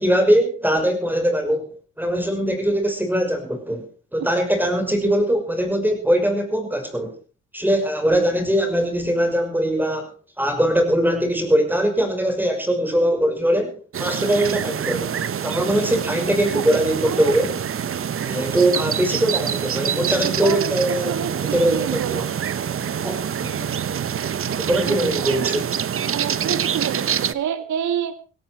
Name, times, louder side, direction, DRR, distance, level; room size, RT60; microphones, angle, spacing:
voice 1, 0.0-1.7 2.0-3.8 4.1-7.1 7.5-10.1 10.4-15.1 15.4-17.5 18.2-21.1 21.5-21.9 23.0-23.7 24.6-25.6, equal, 5° right, 6 dB, 5.8 m, -21 dB
sound 1, 13.9-27.3, right 8 dB, 45° right, 1.1 m, -26 dB
voice 2, 16.5-17.3 20.2-20.7 21.1-22.3 24.9-25.5 26.1-28.2, right 9 dB, 70° right, 11 dB, 2.3 m, -28 dB
17.0 x 16.0 x 4.7 m, 0.38 s
cardioid pair, 90°, 30 cm